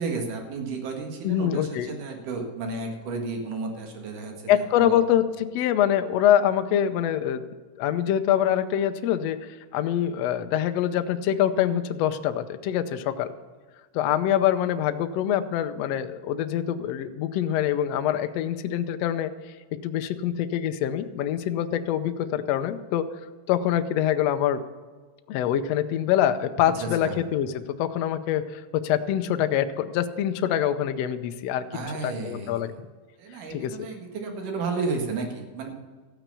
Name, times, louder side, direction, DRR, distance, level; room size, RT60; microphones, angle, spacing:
voice 1, 0.0-5.0 26.8-27.2 31.7-32.8 33.2-35.8, right 3 dB, 70° right, 3 dB, 3.4 m, -32 dB
voice 2, 1.2-1.9 4.5-7.4 7.8-13.3 13.9-19.3 19.8-23.1 23.5-24.6 25.3-31.7 32.0-32.9 33.5-33.7, left 10 dB, 80° left, 9 dB, 1.5 m, -25 dB
14.5 x 9.1 x 6.9 m, 1.4 s
omnidirectional pair, 3.9 m